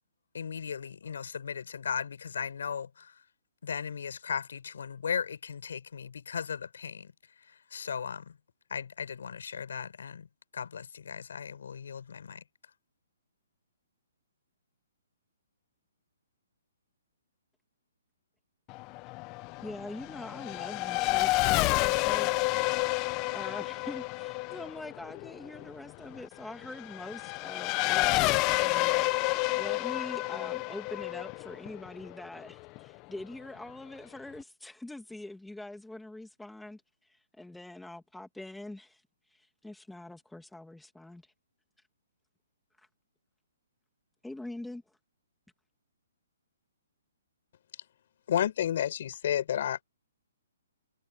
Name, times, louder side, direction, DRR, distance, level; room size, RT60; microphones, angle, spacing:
voice 1, 0.3-3.2 3.6-7.1 7.5-8.4 8.7-10.3 10.5-12.4, left 7 dB, 70° left, 6.8 m, -37 dB
Race car auto racing / Accelerating revving vroom, 18.7-32.8, left 22 dB, 20° left, 0.7 m, -30 dB
voice 2, 19.6-22.4 23.3-39.0 39.3-41.2 44.2-44.8, left 2 dB, ahead, 1.8 m, -44 dB
voice 3, 48.3-49.8, left 10 dB, 45° left, 5.5 m, -29 dB
hypercardioid pair, 170°, 0 cm